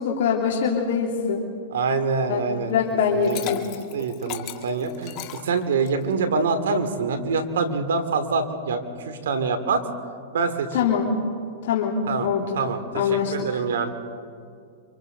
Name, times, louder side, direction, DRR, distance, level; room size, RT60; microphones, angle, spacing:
voice 1, 0.0-1.5 2.3-2.4 2.7-3.6 10.7-11.1 11.6-12.6 12.9-13.5, left 6 dB, 70° left, -1 dB, 2.8 m, -23 dB
voice 2, 1.7-2.7 3.1-3.6 3.9-5.2 5.4-8.8 9.0-9.8 10.3-10.7 12.1-12.3 12.5-13.9, right 4 dB, 80° right, 8 dB, 2.6 m, -25 dB
Liquid, 3.0-6.1, left 12 dB, 40° left, 1.9 m, -36 dB
28.5 x 25.5 x 4.0 m, 2.3 s
hypercardioid pair, 130°, 0 cm